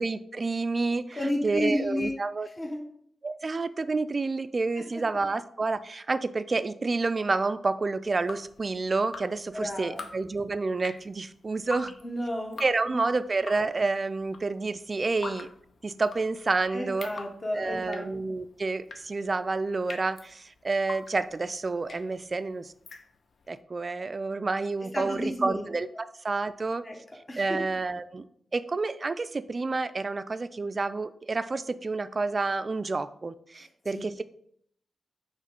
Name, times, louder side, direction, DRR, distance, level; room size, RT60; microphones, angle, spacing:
voice 1, 0.0-2.5 3.2-11.9 12.6-15.5 15.8-17.1 17.5-22.7 23.5-25.9 26.2-26.8 27.4-28.3 28.5-34.2, right 3 dB, 35° right, 13 dB, 0.3 m, -29 dB
voice 2, 1.1-2.2 2.6-2.8 4.8-4.9 9.5-10.0 12.0-13.0 16.7-18.1 24.9-25.6 26.8-27.0 27.3-27.6 33.5-34.1, left 1 dB, 25° left, 1 dB, 0.9 m, -32 dB
Drip, 8.0-23.5, left 4 dB, 60° left, 0.5 m, -45 dB
6.5 x 3.1 x 5.1 m, 0.67 s
wide cardioid pair, 115°, 0 cm